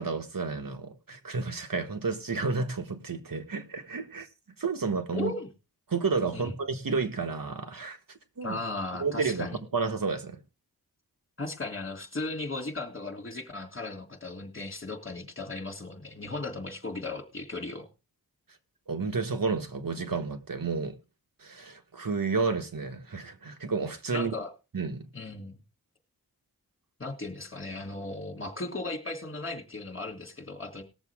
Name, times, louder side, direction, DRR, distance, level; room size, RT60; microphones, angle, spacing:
voice 1, 0.0-4.3 4.6-5.3 5.9-8.6 9.0-10.4 18.9-21.0 21.4-24.3 24.7-25.1, right 4 dB, 65° right, 1.5 m, -31 dB
voice 2, 5.1-5.5 6.3-6.5 8.4-9.6 11.4-17.9 24.1-24.5 25.1-25.6 27.0-30.8, left 3 dB, 35° left, 3.0 m, -36 dB
19.5 x 7.1 x 3.6 m
wide cardioid pair, 60°, 36 cm